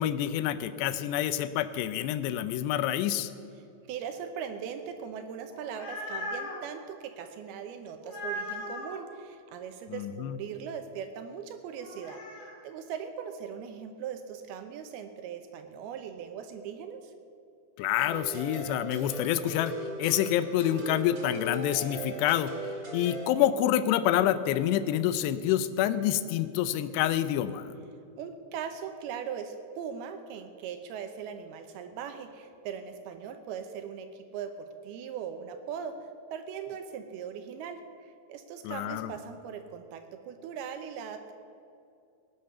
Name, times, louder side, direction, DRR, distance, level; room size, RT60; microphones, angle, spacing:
voice 1, 0.0-3.3 9.9-10.4 17.8-19.7 20.0-22.5 22.9-27.6 38.7-39.1, left 11 dB, 80° left, 13 dB, 2.6 m, -27 dB
voice 2, 3.9-17.1 28.2-41.3, right 7 dB, 80° right, 7 dB, 2.3 m, -40 dB
sound 1, 5.4-6.6 8.0-9.0 11.8-12.5, left 1 dB, 55° left, 5.3 m, -38 dB
sound 2, 18.1-23.3, right 2 dB, 50° right, 1.0 m, -38 dB
17.5 x 9.8 x 6.8 m, 2.5 s
omnidirectional pair, 5.2 m